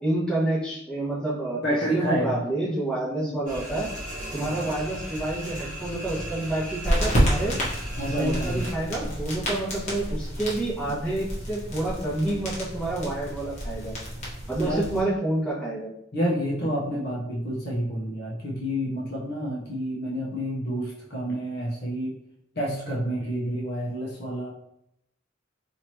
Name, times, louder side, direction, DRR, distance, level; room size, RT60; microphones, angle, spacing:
voice 1, 0.0-1.6 1.9-3.9 4.3-7.6 8.1-13.9 14.5-15.9, right 1 dB, 5° left, -10 dB, 1.5 m, -28 dB
voice 2, 1.6-2.4 3.2-3.4 8.0-8.6 14.6-14.8 16.1-22.1 22.5-24.5, equal, 55° left, -4 dB, 1.0 m, -29 dB
sound 1, 3.5-8.7, equal, 40° right, 1.5 m, -36 dB
sound 2, 6.8-15.0, equal, 40° left, 1.2 m, -29 dB
4.5 x 2.8 x 2.9 m, 0.78 s
head